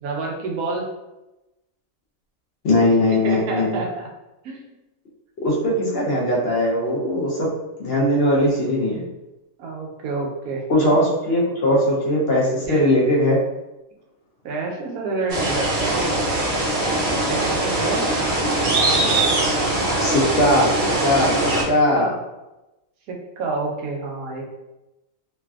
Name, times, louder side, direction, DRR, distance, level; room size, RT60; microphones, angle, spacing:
voice 1, 0.0-0.9 3.1-4.1 4.4-4.7 9.6-10.7 12.7-12.9 14.4-16.2 17.3-18.0 21.3-21.5 21.9-22.2 23.1-24.4, right 3 dB, 90° right, -1 dB, 1.1 m, -28 dB
voice 2, 2.6-3.8 5.4-7.5 7.8-9.1 10.7-13.4 20.0-20.7 21.0-22.1, left 1 dB, 55° left, -5 dB, 0.8 m, -19 dB
sound 1, 15.3-21.6, right 2 dB, 50° right, 0.7 m, -21 dB
3.2 x 2.5 x 2.3 m, 1.0 s
omnidirectional pair, 1.5 m